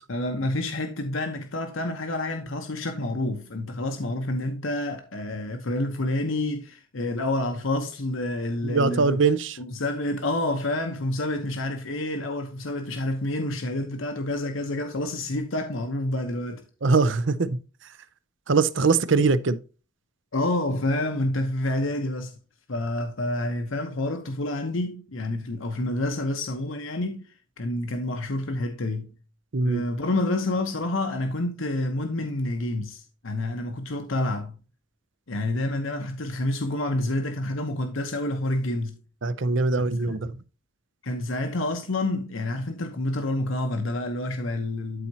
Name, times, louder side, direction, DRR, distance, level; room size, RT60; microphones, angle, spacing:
voice 1, 0.1-9.2 9.6-16.6 20.3-22.3 22.7-27.2 27.6-29.2 29.6-34.6 35.3-39.0 41.0-45.1, left 1 dB, 80° left, 1.0 m, -28 dB
voice 2, 8.6-9.6 16.8-17.6 18.5-19.6 29.5-29.8 39.2-40.4, right 4 dB, 65° right, 0.6 m, -22 dB
13.0 x 4.3 x 2.8 m
head